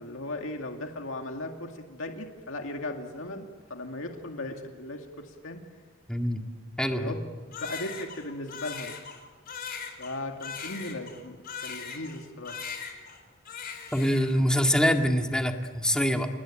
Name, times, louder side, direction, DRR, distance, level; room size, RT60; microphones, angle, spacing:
voice 1, 0.0-5.6 6.9-9.0 10.0-12.6, left 2 dB, 65° left, 3 dB, 2.2 m, -37 dB
voice 2, 6.1-6.4 6.8-7.2 13.9-16.3, equal, 5° left, 3 dB, 2.1 m, -25 dB
Crying sobbing, 7.5-12.2 12.5-13.2 13.5-14.4, left 6 dB, 45° left, 4.4 m, -39 dB
28.5 x 20.5 x 8.8 m, 1.6 s
head